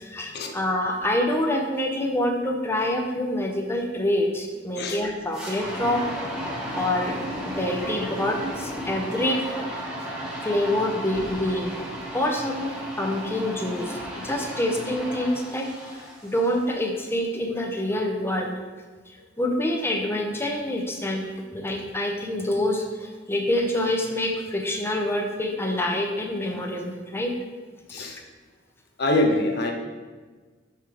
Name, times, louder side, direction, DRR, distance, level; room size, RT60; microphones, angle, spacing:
voice 1, 0.0-6.0 6.7-7.2 7.5-9.7 10.4-11.8 12.1-15.9 16.2-18.5 19.4-27.3, left 1 dB, 15° left, 1 dB, 0.7 m, -26 dB
sound 1, 5.3-16.7, equal, 5° right, 1.2 m, -34 dB
voice 2, 29.0-29.7, left 1 dB, 60° left, 3 dB, 0.9 m, -24 dB
5.4 x 4.5 x 4.8 m, 1.4 s
head